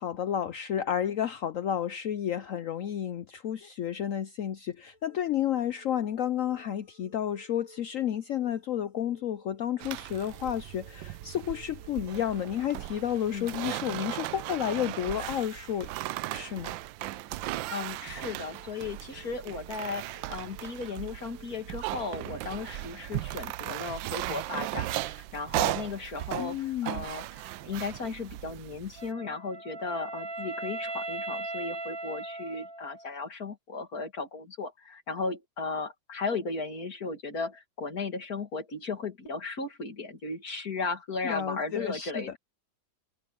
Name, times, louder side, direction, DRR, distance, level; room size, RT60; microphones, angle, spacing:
voice 1, 0.0-15.9 16.3-16.7 26.4-27.0 41.2-42.4, left 10 dB, 80° left, 0.7 m, -31 dB
sound 1, 4.9-22.6, equal, 30° right, 7.9 m, -58 dB
sound 2, 9.8-29.1, right 16 dB, 80° right, 1.3 m, -37 dB
voice 2, 17.7-42.3, left 4 dB, 50° left, 2.8 m, -36 dB
Wind instrument woodwind instrument, 29.0-33.2, right 2 dB, 50° right, 1.5 m, -38 dB
omnidirectional pair, 2.1 m